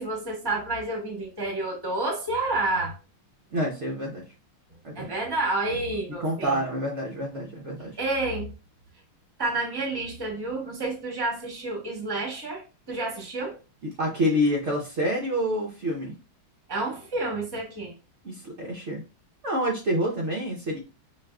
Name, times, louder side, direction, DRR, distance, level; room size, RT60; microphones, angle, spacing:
voice 1, 0.0-2.9 4.9-6.6 8.0-8.5 9.4-13.6 16.7-17.9, right 2 dB, 25° right, 0.5 m, -29 dB
voice 2, 3.5-4.2 4.8-5.1 6.2-8.0 14.0-16.1 18.2-19.0 19.4-20.8, equal, 90° right, 0.6 m, -27 dB
6.1 x 2.4 x 2.3 m
omnidirectional pair, 2.3 m